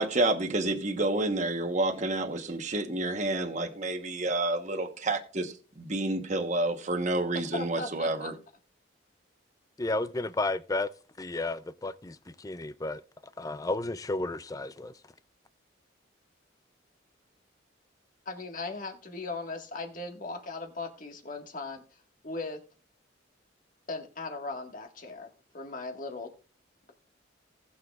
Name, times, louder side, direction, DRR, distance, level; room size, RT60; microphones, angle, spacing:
voice 1, 0.0-5.5 5.8-8.3, right 2 dB, 40° right, 1.1 m, -29 dB
voice 2, 7.3-8.3 18.2-21.8 22.2-22.6 23.9-25.3 25.5-26.3, left 3 dB, 45° left, 1.7 m, -38 dB
voice 3, 9.8-10.9 11.2-13.0 13.4-14.9, left 2 dB, 20° left, 0.4 m, -32 dB
19.5 x 6.8 x 2.4 m
head